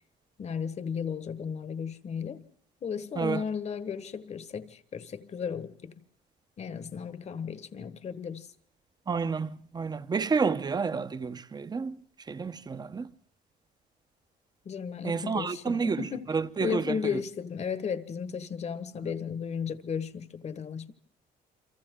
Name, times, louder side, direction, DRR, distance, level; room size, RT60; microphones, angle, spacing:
voice 1, 0.4-2.5 2.8-6.0 6.6-8.5 14.6-16.3 16.6-20.9, left 6 dB, 40° left, 1.3 m, -34 dB
voice 2, 9.1-11.9 12.3-13.1 15.0-16.0 16.3-17.0, right 5 dB, 25° right, 0.9 m, -30 dB
29.5 x 23.5 x 3.8 m
cardioid pair, 110°, 17 cm